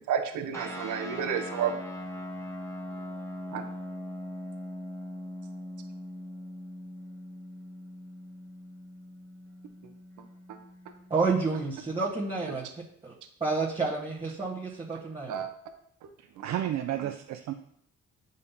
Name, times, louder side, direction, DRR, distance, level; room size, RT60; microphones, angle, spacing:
voice 1, 0.0-1.8 3.5-3.6 10.5-10.6 15.3-15.5 16.0-16.1 17.0-17.1, right 8 dB, 80° right, 6 dB, 0.8 m, -31 dB
sound 1, 0.5-11.4, left 1 dB, 10° left, 1.4 m, -41 dB
voice 2, 11.1-12.6 13.0-13.1 13.4-15.4, right 4 dB, 15° right, -5 dB, 1.2 m, -29 dB
voice 3, 16.2-17.5, right 11 dB, 65° right, 6 dB, 0.5 m, -32 dB
8.5 x 5.3 x 2.7 m, 0.69 s
cardioid pair, 90°, 30 cm